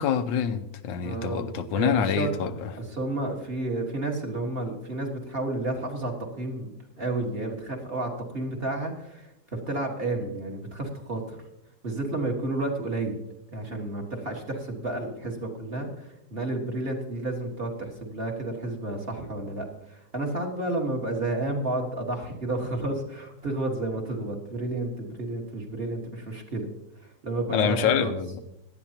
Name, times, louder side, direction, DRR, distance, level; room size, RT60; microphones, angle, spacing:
voice 1, 0.0-2.5 27.5-28.4, left 8 dB, 85° left, 10 dB, 1.4 m, -26 dB
voice 2, 1.0-1.4 1.7-2.3 2.8-11.4 11.8-13.2 13.5-26.7 27.0-28.2, right 2 dB, 35° right, 1 dB, 1.8 m, -31 dB
17.5 x 11.5 x 2.9 m, 0.86 s
omnidirectional pair, 1.9 m